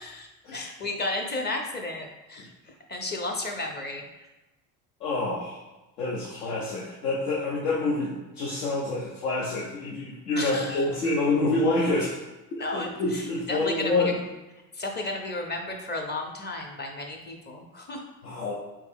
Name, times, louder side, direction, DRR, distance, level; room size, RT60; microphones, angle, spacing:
voice 1, 0.0-2.5 2.9-4.0 10.4-10.9 12.6-14.2 14.7-18.1, left 2 dB, 20° left, 3 dB, 0.5 m, -33 dB
voice 2, 5.0-5.6 6.0-12.2 12.7-14.2 18.2-18.5, left 2 dB, 80° left, -5 dB, 0.8 m, -27 dB
3.3 x 2.9 x 3.5 m, 1.1 s
hypercardioid pair, 70°, 49 cm